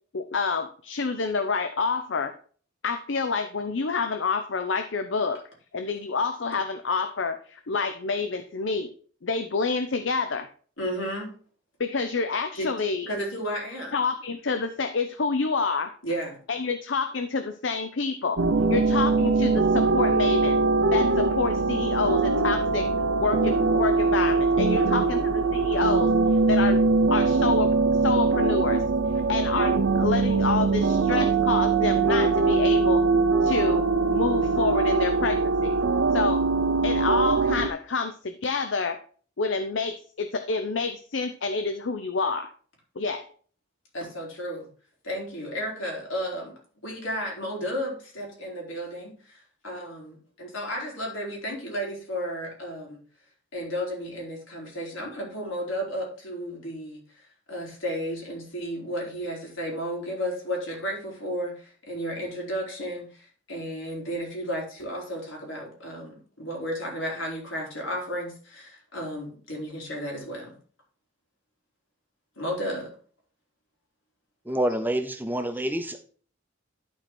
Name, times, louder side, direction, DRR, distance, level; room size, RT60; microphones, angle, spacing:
voice 1, 0.1-2.3 2.8-5.4 5.7-8.9 9.2-10.5 11.8-13.1 13.9-15.9 16.5-18.4 18.7-20.6 20.9-22.9 23.2-26.1 26.5-26.8 27.1-28.8 29.3-33.0 33.4-35.8 36.1-36.4 36.8-39.0 39.4-42.5 43.0-43.2, left 4 dB, 70° left, 8 dB, 0.7 m, -28 dB
voice 2, 10.8-11.3 12.5-12.7 13.1-14.0 16.0-16.4 24.7-25.3 43.9-44.7 45.0-53.0 53.5-70.6 72.4-72.9, equal, 90° left, -1 dB, 3.9 m, -33 dB
sound 1, 18.4-37.7, right 3 dB, 90° right, 0.7 m, -22 dB
voice 3, 74.5-76.0, right 1 dB, 10° right, 8 dB, 0.6 m, -27 dB
11.5 x 4.6 x 4.4 m, 0.43 s
head